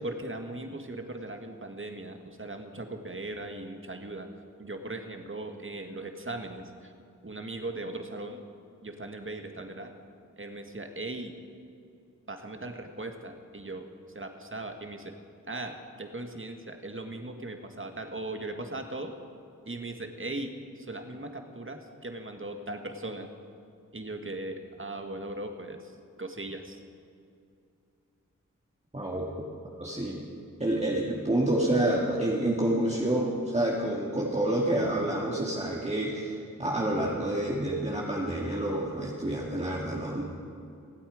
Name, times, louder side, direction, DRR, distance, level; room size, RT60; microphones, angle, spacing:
voice 1, 0.0-4.3 4.6-6.9 7.2-8.4 8.8-9.9 10.4-11.3 12.3-13.9 14.1-15.1 15.5-19.1 19.6-23.3 23.9-26.8, right 2 dB, 40° right, 5 dB, 1.6 m, -38 dB
voice 2, 28.9-29.3 29.8-30.2 30.6-40.2, right 1 dB, 20° right, -4 dB, 2.0 m, -28 dB
25.0 x 8.7 x 5.0 m, 2.5 s
cardioid pair, 45°, 32 cm